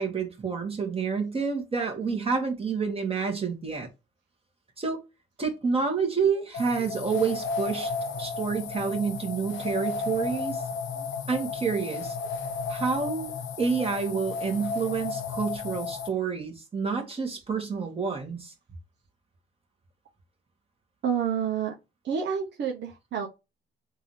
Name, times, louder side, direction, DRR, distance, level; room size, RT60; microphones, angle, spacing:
voice 1, 0.0-3.9 4.8-5.0 5.4-7.9 8.2-10.6 11.3-12.2 12.7-13.3 13.6-18.5, right 5 dB, 30° right, 1.7 m, -28 dB
sound 1, 6.5-16.1, left 5 dB, 75° left, 0.8 m, -33 dB
voice 2, 6.8-7.4 11.0-11.1 11.9-12.0 21.0-21.7 22.0-23.3, right 7 dB, 60° right, 1.0 m, -30 dB
3.7 x 2.8 x 4.7 m
cardioid pair, 90°, 20 cm